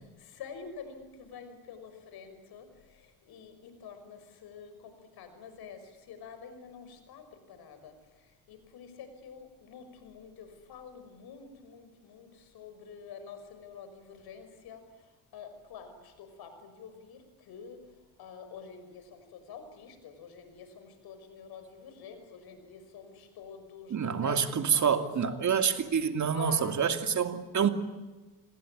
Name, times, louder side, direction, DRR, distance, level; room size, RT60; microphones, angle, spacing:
voice 1, 0.2-17.8 18.2-25.4 26.3-26.8, left 6 dB, 75° left, 9 dB, 6.0 m, -48 dB
voice 2, 23.9-27.7, right 7 dB, 50° right, 7 dB, 2.6 m, -27 dB
27.5 x 21.0 x 8.8 m, 1.2 s
supercardioid pair, 75°, 38 cm